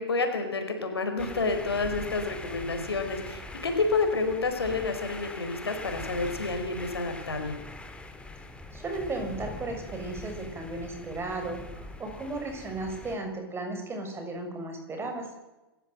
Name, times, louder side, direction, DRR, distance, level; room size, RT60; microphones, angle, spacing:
voice 1, 0.0-7.5, left 3 dB, 80° left, 6 dB, 4.8 m, -29 dB
sound 1, 1.2-13.2, left 2 dB, 10° left, 3.2 m, -42 dB
voice 2, 8.7-15.3, right 2 dB, 20° right, 4 dB, 6.6 m, -35 dB
27.5 x 15.0 x 8.0 m, 1.1 s
figure-of-eight pair, 100°, 13 cm